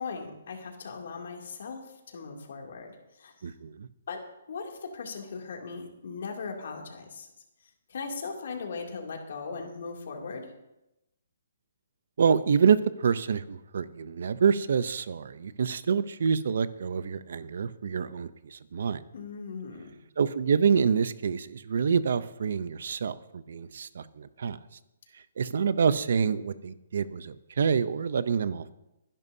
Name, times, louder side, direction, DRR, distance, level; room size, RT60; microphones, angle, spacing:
voice 1, 0.0-3.5 4.1-7.3 7.9-10.5 19.1-20.0, left 4 dB, 60° left, 1 dB, 2.7 m, -39 dB
voice 2, 3.4-3.9 12.2-19.0 20.2-24.6 25.4-28.7, right 6 dB, 65° right, 15 dB, 0.7 m, -27 dB
22.5 x 11.0 x 2.8 m, 0.92 s
hypercardioid pair, 160°, 0 cm